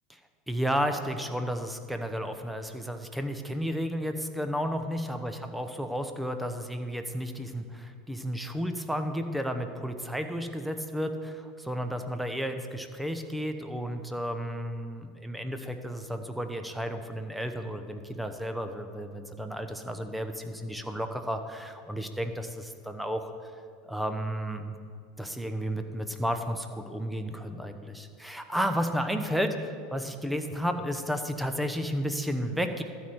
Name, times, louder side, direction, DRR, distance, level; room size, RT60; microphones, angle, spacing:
voice 1, 0.5-23.5 23.8-24.8 25.2-29.5 29.9-32.8, equal, 5° right, 7 dB, 0.9 m, -32 dB
12.5 x 4.6 x 7.8 m, 2.2 s
hypercardioid pair, 85°, 0 cm